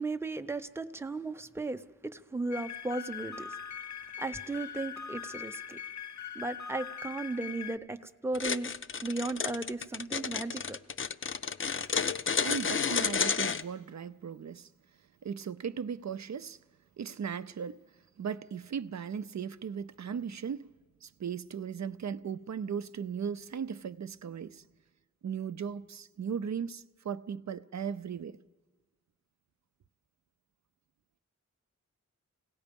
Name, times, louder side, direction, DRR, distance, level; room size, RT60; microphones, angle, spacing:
voice 1, 0.0-1.8 2.1-3.6 4.2-5.8 6.3-8.7 9.0-10.8, right 2 dB, 10° right, 0.7 m, -36 dB
sound 1, 2.5-7.8, left 8 dB, 75° left, 0.8 m, -41 dB
sound 2, 8.3-13.6, left 6 dB, 45° left, 0.5 m, -31 dB
voice 2, 12.4-14.7 15.2-16.6 17.0-17.8 18.2-20.7 21.0-24.6 25.2-28.4, right 7 dB, 65° right, 0.6 m, -37 dB
29.0 x 17.5 x 5.3 m
wide cardioid pair, 115°, 29 cm